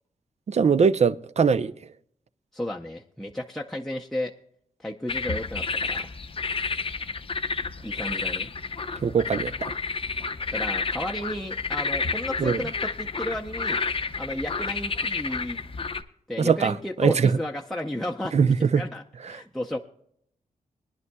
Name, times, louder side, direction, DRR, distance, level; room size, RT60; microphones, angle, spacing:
voice 1, 0.5-1.7 9.0-9.7 12.4-12.6 16.4-16.7 17.0-17.3 18.3-18.8, right 6 dB, 50° right, 0.6 m, -21 dB
voice 2, 2.5-4.3 4.8-6.1 7.8-8.5 10.5-13.8 14.1-15.6 16.3-19.8, left 1 dB, ahead, 0.7 m, -33 dB
sound 1, 5.1-16.0, left 4 dB, 40° left, 0.7 m, -30 dB
22.0 x 11.0 x 2.3 m
wide cardioid pair, 100°, 15 cm